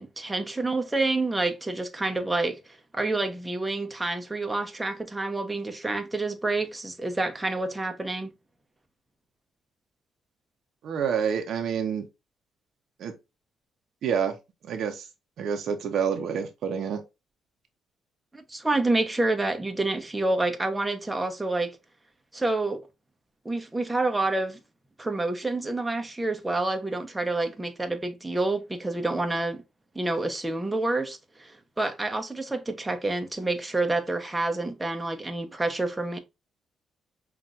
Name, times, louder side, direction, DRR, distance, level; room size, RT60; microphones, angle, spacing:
voice 1, 0.0-2.6 2.9-8.3 18.3-21.7 22.3-22.8 23.4-24.6 25.0-29.6 29.9-36.2, right 2 dB, 15° right, 0.8 m, -28 dB
voice 2, 10.8-12.1 13.0-13.1 14.0-14.3 14.6-15.1 15.4-17.0, right 7 dB, 70° right, 0.8 m, -28 dB
5.8 x 2.5 x 2.5 m
cardioid pair, 90°, 0 cm